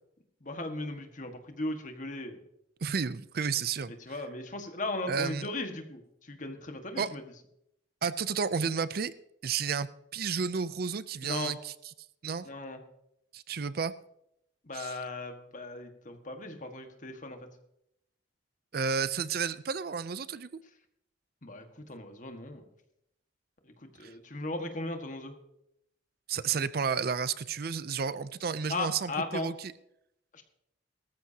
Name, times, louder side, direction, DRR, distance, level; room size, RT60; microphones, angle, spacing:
voice 1, 0.4-2.4 4.0-7.2 11.2-11.5 12.4-12.8 14.6-17.4 21.4-22.6 23.6-25.3 28.7-29.5 30.3-30.4, left 2 dB, 45° left, 6 dB, 1.6 m, -37 dB
voice 2, 2.8-3.9 5.1-5.5 7.0-7.1 8.0-9.1 9.4-11.7 12.2-12.5 13.3-13.9 14.7-15.0 18.7-20.5 24.0-24.1 26.3-29.7, right 6 dB, 55° right, 16 dB, 0.5 m, -32 dB
18.5 x 14.0 x 2.8 m, 0.79 s
head